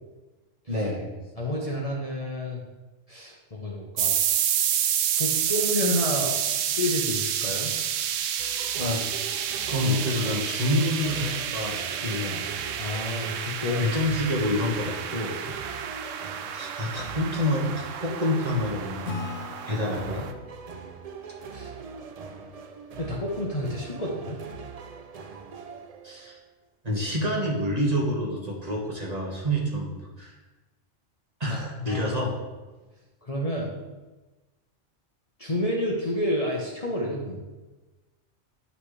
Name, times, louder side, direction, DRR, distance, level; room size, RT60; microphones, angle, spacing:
voice 1, 0.7-1.1 8.8-9.0 9.7-12.5 13.8-15.5 16.5-19.1 19.6-20.3 26.0-26.4 26.8-30.3 31.4-32.3, left 1 dB, 30° right, -3 dB, 1.6 m, -27 dB
voice 2, 1.4-2.6 3.1-4.2 5.1-6.3 6.8-7.7 12.8-13.8 21.5-21.7 23.0-24.4 31.8-32.1 33.2-33.7 35.4-37.4, left 1 dB, 30° left, -3 dB, 1.1 m, -29 dB
sound 1, 4.0-20.3, right 9 dB, 85° right, 1.0 m, -29 dB
sound 2, 8.4-26.5, right 5 dB, 70° right, 0.3 m, -42 dB
Acoustic guitar / Strum, 19.1-22.5, left 4 dB, 90° left, 1.2 m, -40 dB
9.7 x 5.8 x 3.3 m, 1.2 s
omnidirectional pair, 1.3 m